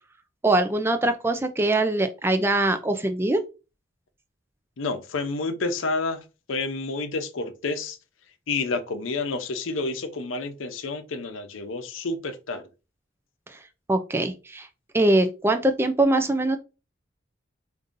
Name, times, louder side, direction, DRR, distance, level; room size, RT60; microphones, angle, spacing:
voice 1, 0.4-3.4 13.9-14.7 14.9-16.6, right 2 dB, 10° right, 0.3 m, -22 dB
voice 2, 4.8-8.0 8.5-12.6, left 3 dB, 90° left, 0.7 m, -29 dB
5.2 x 2.6 x 2.5 m
head